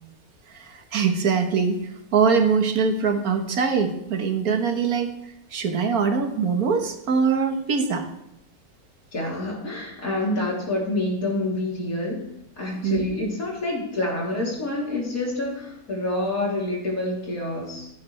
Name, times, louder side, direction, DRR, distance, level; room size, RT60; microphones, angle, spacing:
voice 1, 0.5-5.1 5.5-8.0 12.8-13.0, right 5 dB, 85° right, 6 dB, 1.7 m, -23 dB
voice 2, 9.1-12.2 12.6-17.9, left 2 dB, 70° left, -3 dB, 3.7 m, -27 dB
16.0 x 8.6 x 3.3 m, 0.82 s
omnidirectional pair, 1.5 m